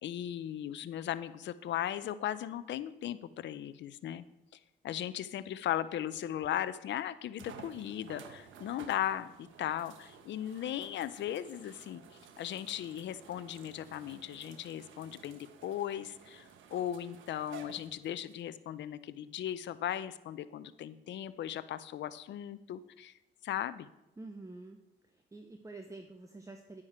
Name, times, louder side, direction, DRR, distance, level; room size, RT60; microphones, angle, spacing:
voice 1, 0.0-4.2 4.8-12.0 12.4-23.1 23.4-23.9, left 11 dB, 65° left, 14 dB, 0.6 m, -37 dB
sound 1, 6.3-6.4 7.4-18.4 19.1-19.2 22.7-22.8, right 6 dB, 75° right, 1.1 m, -54 dB
voice 2, 24.2-24.8 25.1-26.8, right 2 dB, 15° right, 5 dB, 0.9 m, -48 dB
9.8 x 9.7 x 4.4 m, 0.91 s
cardioid pair, 90°, 20 cm